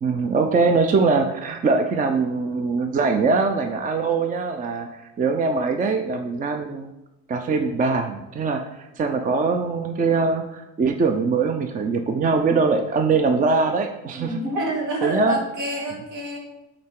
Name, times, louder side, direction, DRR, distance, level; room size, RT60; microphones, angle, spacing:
voice 1, 0.0-4.9 5.2-6.9 7.3-14.4 15.0-15.4, right 4 dB, 25° right, 6 dB, 0.5 m, -22 dB
voice 2, 14.1-16.4, right 1 dB, 65° right, -2 dB, 2.3 m, -28 dB
8.6 x 3.8 x 3.7 m, 0.96 s
supercardioid pair, 100°, 32 cm